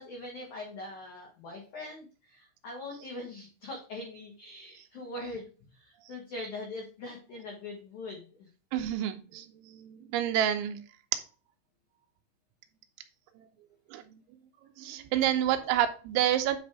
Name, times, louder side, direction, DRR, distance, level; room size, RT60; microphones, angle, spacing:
voice 1, 0.0-8.5 15.5-15.7, left 2 dB, 75° left, 0 dB, 1.8 m, -42 dB
voice 2, 8.7-9.5 9.7-10.8 13.9-14.0 14.8-16.6, right 11 dB, 85° right, 7 dB, 2.9 m, -28 dB
8.9 x 3.4 x 4.6 m, 0.36 s
omnidirectional pair, 5.7 m